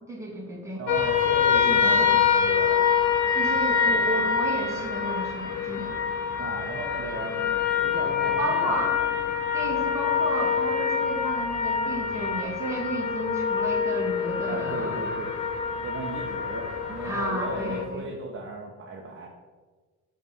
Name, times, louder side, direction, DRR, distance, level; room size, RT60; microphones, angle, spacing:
voice 1, 0.0-0.8 1.5-2.2 3.3-6.0 8.4-9.0 9.5-15.0 17.0-18.1, right 1 dB, 10° right, -3 dB, 1.8 m, -32 dB
voice 2, 0.8-2.8 6.4-8.8 14.4-15.3 15.8-19.3, right 3 dB, 40° right, 0 dB, 1.0 m, -36 dB
sound 1, 0.9-17.8, left 6 dB, 85° left, 1.1 m, -25 dB
7.1 x 3.4 x 5.4 m, 1.4 s
cardioid pair, 90°, 30 cm